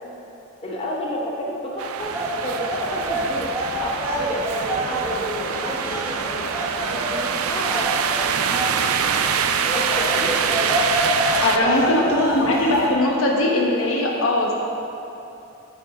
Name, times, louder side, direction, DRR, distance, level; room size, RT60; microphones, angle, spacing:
voice 1, 0.6-2.2 2.4-6.5 6.9-7.9 8.9-9.5 9.7-10.3 11.3-12.0, left 1 dB, 25° left, -3 dB, 0.8 m, -30 dB
sound 1, 1.8-11.6, right 7 dB, 85° right, 0.4 m, -25 dB
sound 2, 2.0-12.9, equal, 10° right, 1.1 m, -28 dB
voice 2, 11.4-14.5, left 1 dB, 75° left, -1 dB, 1.3 m, -20 dB
9.0 x 8.5 x 3.7 m, 2.8 s
head